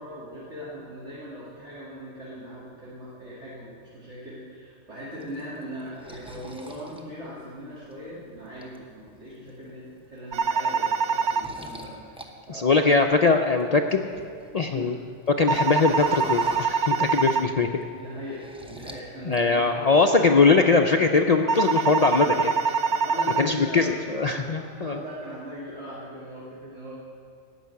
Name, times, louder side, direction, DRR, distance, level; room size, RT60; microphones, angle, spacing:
voice 1, 0.0-12.2 12.5-12.9 14.7-14.9 17.9-19.8 22.8-24.0 24.3-26.9, equal, 60° right, -9 dB, 2.5 m, -39 dB
sound 1, 5.2-7.9 8.4-9.1 9.5-9.7 10.0-12.3 12.6-14.7 15.0-17.3 17.6-19.1 19.3-19.9, right 1 dB, 5° right, 0.7 m, -43 dB
sound 2, 10.3-11.5 15.5-17.5 21.5-23.5, right 5 dB, 90° right, 0.3 m, -24 dB
voice 2, 12.5-14.1 14.5-14.9 15.3-17.7 19.2-22.8 23.4-25.0, left 4 dB, 80° left, 4 dB, 0.3 m, -21 dB
14.5 x 5.6 x 9.4 m, 2.3 s
omnidirectional pair, 1.4 m